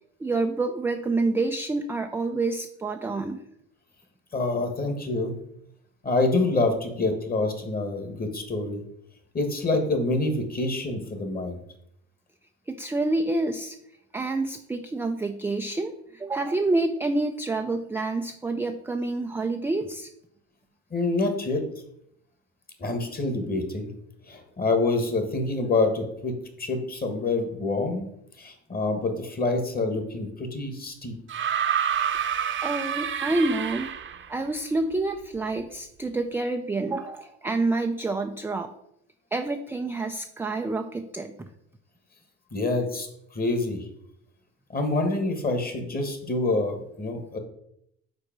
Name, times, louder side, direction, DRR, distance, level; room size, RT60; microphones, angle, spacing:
voice 1, 0.2-3.4 12.7-13.8 14.1-20.1 32.6-33.9 34.3-38.7 39.3-41.5, right 2 dB, 5° right, 5 dB, 0.3 m, -28 dB
voice 2, 4.3-5.3 6.0-8.8 9.3-11.6 20.9-21.6 22.8-23.9 24.3-28.1 28.4-31.1 42.5-43.1 43.3-43.8 44.7-47.4, left 2 dB, 25° left, 6 dB, 1.5 m, -26 dB
sound 1, 31.3-34.4 35.6-35.7, right 8 dB, 35° right, 0.7 m, -28 dB
4.9 x 4.2 x 5.9 m, 0.75 s
supercardioid pair, 90°, 36 cm